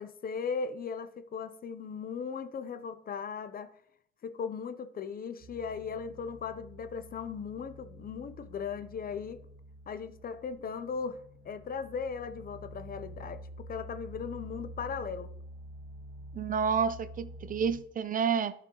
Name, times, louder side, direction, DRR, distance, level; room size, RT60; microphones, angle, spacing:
voice 1, 0.0-3.7 4.2-9.4 9.9-15.3, left 6 dB, 50° left, 0.7 m, -38 dB
sound 1, 5.4-17.8, right 1 dB, 85° right, 1.8 m, -48 dB
voice 2, 16.3-18.5, right 6 dB, 45° right, 0.5 m, -29 dB
11.0 x 5.8 x 3.0 m
cardioid pair, 90°, 20 cm